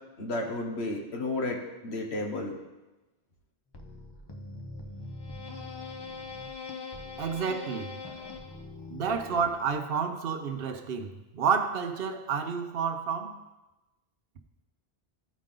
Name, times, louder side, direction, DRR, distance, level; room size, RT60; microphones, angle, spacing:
voice 1, 0.2-1.6 1.8-2.5, left 2 dB, 80° left, 1.6 m, -32 dB
sound 1, 3.7-10.0, left 3 dB, 25° left, 0.7 m, -42 dB
voice 2, 7.2-8.0 8.9-13.4, right 6 dB, 65° right, 0.9 m, -30 dB
14.0 x 5.1 x 3.8 m
omnidirectional pair, 1.1 m